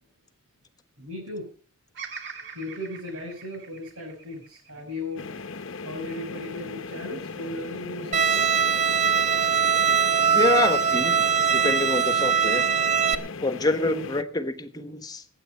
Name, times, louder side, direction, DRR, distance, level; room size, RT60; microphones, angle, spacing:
voice 1, 1.0-1.5 2.5-5.3 5.8-8.5, left 1 dB, 85° right, -2 dB, 5.6 m, -36 dB
Bird vocalization bird call bird song, 1.9-6.2 6.7-7.5, right 6 dB, 50° right, 2.3 m, -44 dB
sound 1, 5.2-14.2, left 4 dB, 60° left, 0.9 m, -37 dB
Bowed string instrument, 8.1-13.1, right 7 dB, 35° right, 1.2 m, -22 dB
voice 2, 10.3-11.2 11.5-12.7 13.4-15.2, left 2 dB, 20° left, 9 dB, 1.3 m, -26 dB
20.5 x 9.3 x 5.6 m, 0.44 s
head